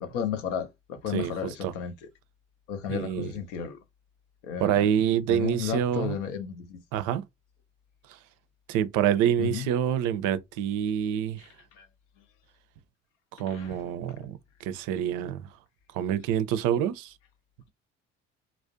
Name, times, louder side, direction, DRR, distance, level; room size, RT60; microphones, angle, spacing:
voice 1, 0.0-2.0 2.7-3.8 4.4-4.9 5.3-6.8 9.4-9.7 11.8-11.9 13.5-13.8, left 8 dB, 70° left, 0.6 m, -33 dB
voice 2, 1.1-1.7 2.9-3.3 4.6-6.1 6.9-7.2 8.1-8.2 8.7-11.5 13.3-15.5 15.9-17.1, right 10 dB, 55° right, 0.5 m, -27 dB
2.4 x 2.0 x 2.5 m
figure-of-eight pair, 55°, 37 cm